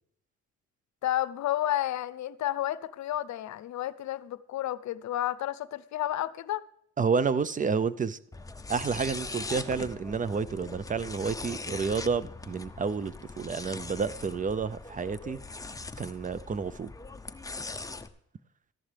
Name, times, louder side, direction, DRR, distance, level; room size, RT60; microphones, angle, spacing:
voice 1, 1.0-6.6, left 13 dB, 65° left, 16 dB, 0.6 m, -31 dB
voice 2, 7.0-8.2 8.7-15.4 16.0-16.9, right 5 dB, 25° right, 16 dB, 0.6 m, -30 dB
sound 1, 8.3-18.1, left 3 dB, 10° left, 0.7 m, -41 dB
13.5 x 11.0 x 3.4 m, 0.73 s
cardioid pair, 90°, 30 cm